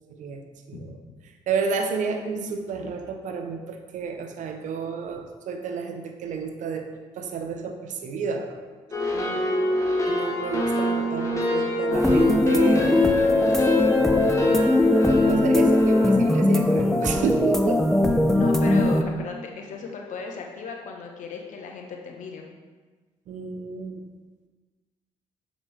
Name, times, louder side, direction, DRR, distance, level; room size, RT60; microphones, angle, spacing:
voice 1, 0.1-0.4 0.7-1.0 1.3-6.9 7.2-8.6 10.1-14.2 14.9-17.8 23.3-24.1, right 5 dB, 65° right, 5 dB, 0.8 m, -31 dB
sound 1, 8.9-16.2, left 2 dB, 25° left, 1.6 m, -25 dB
voice 2, 9.1-9.6 18.3-22.4, left 5 dB, 65° left, 1 dB, 1.2 m, -36 dB
sound 2, 11.9-19.0, left 1 dB, 5° left, 0.7 m, -20 dB
7.2 x 5.0 x 3.4 m, 1.4 s
supercardioid pair, 65°, 14 cm